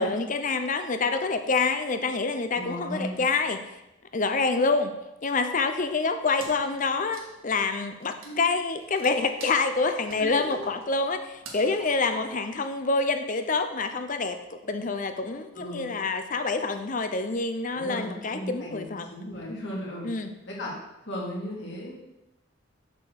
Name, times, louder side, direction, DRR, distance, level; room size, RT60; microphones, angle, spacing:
voice 1, 0.0-3.6 4.1-4.9 5.2-19.1 20.0-20.3, left 3 dB, 40° left, 8 dB, 0.6 m, -27 dB
voice 2, 2.5-3.2 8.2-8.4 10.2-10.6 15.5-15.9 17.7-20.1 20.5-20.7 21.0-22.0, equal, 60° left, -4 dB, 2.4 m, -36 dB
Wood, 6.4-13.1, right 3 dB, 80° right, 1.5 m, -48 dB
6.9 x 4.9 x 6.4 m, 0.92 s
head